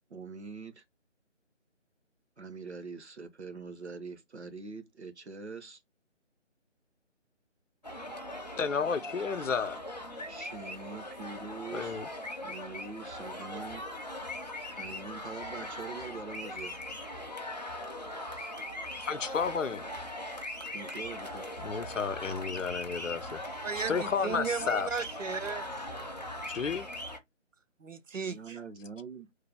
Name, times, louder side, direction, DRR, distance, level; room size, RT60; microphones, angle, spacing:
voice 1, 0.1-0.8 2.4-5.8 10.3-12.0 12.4-13.8 14.7-16.8 20.7-21.5 28.3-29.3, right 4 dB, 60° right, 0.9 m, -43 dB
sound 1, 7.8-27.2, left 1 dB, 35° left, 0.5 m, -40 dB
voice 2, 8.6-9.8 11.7-12.1 19.0-19.8 21.6-23.4 23.9-24.9 26.5-26.9, left 6 dB, 80° left, 0.6 m, -32 dB
sound 2, 21.6-27.0, equal, 35° right, 0.6 m, -53 dB
voice 3, 23.6-25.7 27.8-28.6, right 5 dB, 90° right, 0.6 m, -35 dB
3.3 x 2.2 x 3.3 m
figure-of-eight pair, 155°, 37 cm